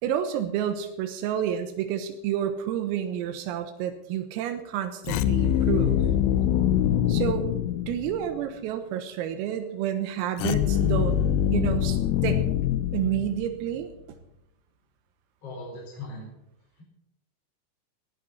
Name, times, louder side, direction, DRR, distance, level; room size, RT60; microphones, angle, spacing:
voice 1, 0.0-6.0 7.1-7.5 7.9-11.2 11.5-12.5 12.9-13.9, right 10 dB, 90° right, 7 dB, 3.9 m, -29 dB
sound 1, 5.0-8.4 10.4-13.7, left 10 dB, 85° left, 2.5 m, -24 dB
voice 2, 15.4-16.3 16.8-16.9, left 2 dB, 30° left, -3 dB, 5.3 m, -39 dB
19.0 x 15.5 x 4.2 m, 0.85 s
omnidirectional pair, 5.9 m